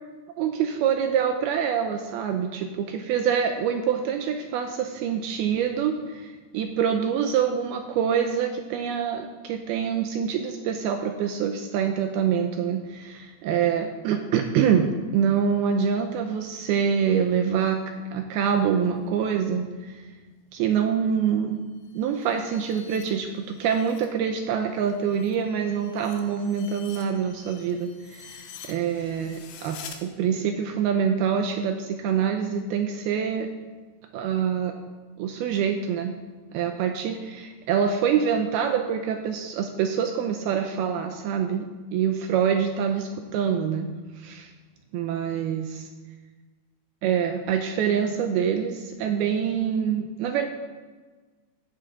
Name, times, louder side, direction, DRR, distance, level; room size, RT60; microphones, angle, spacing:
voice 1, 0.4-17.8 18.1-20.0 20.5-21.6 21.9-33.5 34.1-34.7 35.2-36.2 36.5-41.7 41.9-43.9 44.2-44.5 44.9-45.9 47.0-50.5, right 7 dB, 80° right, 5 dB, 2.3 m, -25 dB
sound 1, 21.7-24.1 24.5-30.0, left 8 dB, 75° left, 2.7 m, -47 dB
14.0 x 8.7 x 3.7 m, 1.3 s
omnidirectional pair, 4.9 m